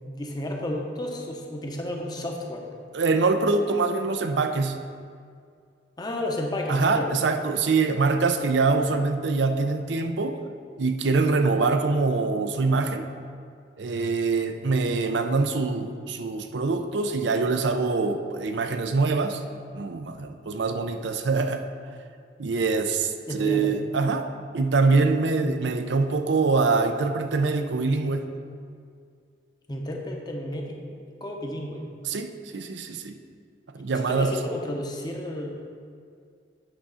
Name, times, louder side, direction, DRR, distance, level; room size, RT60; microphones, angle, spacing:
voice 1, 0.0-2.7 6.0-7.1 23.3-23.7 29.7-30.7 31.2-31.8 33.9-35.7, left 1 dB, 25° left, 1 dB, 0.8 m, -32 dB
voice 2, 2.9-4.8 6.7-10.4 10.8-13.0 13.8-19.4 19.7-21.6 22.4-24.3 24.5-28.3 32.0-33.2 33.7-34.4, right 3 dB, 70° right, 7 dB, 0.5 m, -24 dB
8.9 x 3.6 x 5.6 m, 2.3 s
head